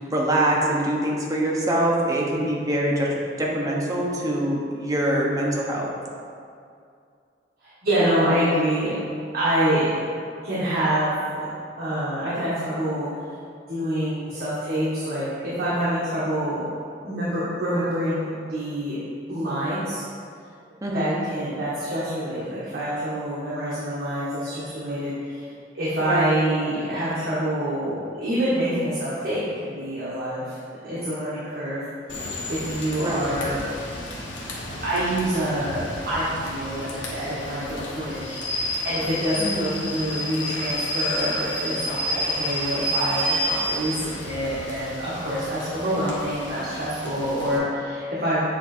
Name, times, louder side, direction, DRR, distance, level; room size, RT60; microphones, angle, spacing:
voice 1, 0.1-5.9 20.8-21.2 26.0-26.4 33.0-33.3 39.4-39.8, right 1 dB, 20° right, -3 dB, 0.9 m, -24 dB
voice 2, 7.6-8.9 9.3-9.9 10.4-11.5 11.8-13.1 13.7-16.7 17.0-19.0 19.3-20.0 20.9-30.6 30.8-31.8 32.5-33.6 34.8-48.5, right 1 dB, 55° right, -10 dB, 1.4 m, -26 dB
Rain / Train, 32.1-47.6, equal, 70° left, 1.2 m, -31 dB
8.3 x 3.1 x 4.3 m, 2.4 s
head